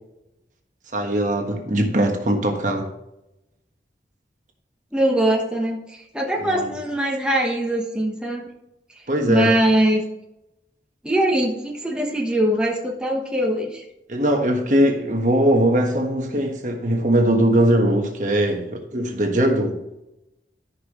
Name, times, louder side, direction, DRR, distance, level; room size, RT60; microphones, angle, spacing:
voice 1, 0.9-2.9 6.5-6.7 9.1-9.5 14.1-19.8, right 1 dB, 45° right, 3 dB, 1.4 m, -20 dB
voice 2, 4.9-8.5 8.9-10.1 11.0-13.9, right 1 dB, 5° right, -1 dB, 1.1 m, -22 dB
13.5 x 5.6 x 3.1 m, 0.90 s
head